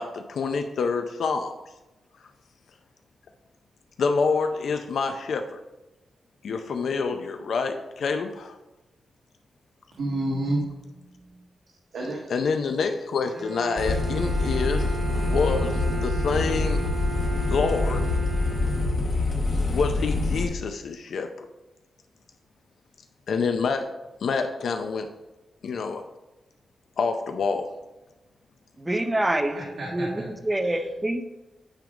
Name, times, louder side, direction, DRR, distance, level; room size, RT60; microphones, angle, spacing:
voice 1, 0.0-1.5 4.0-5.6 6.4-8.6 12.3-14.9 15.3-16.8 17.5-18.1 19.7-21.5 23.3-23.9 24.2-25.1 25.6-26.0 27.0-27.7, left 5 dB, 65° left, 6 dB, 0.5 m, -27 dB
voice 2, 10.0-10.6 11.9-12.3 29.5-30.3 30.6-30.8, right 1 dB, 70° right, -3 dB, 1.4 m, -29 dB
Bowed string instrument, 13.3-19.4, right 5 dB, 30° right, 1.8 m, -36 dB
sound 1, 13.8-20.4, left 2 dB, 45° left, 1.6 m, -25 dB
voice 3, 28.8-29.6 29.9-31.2, right 1 dB, 10° right, 7 dB, 0.6 m, -26 dB
9.0 x 3.6 x 5.0 m, 1.0 s
wide cardioid pair, 165°, 0 cm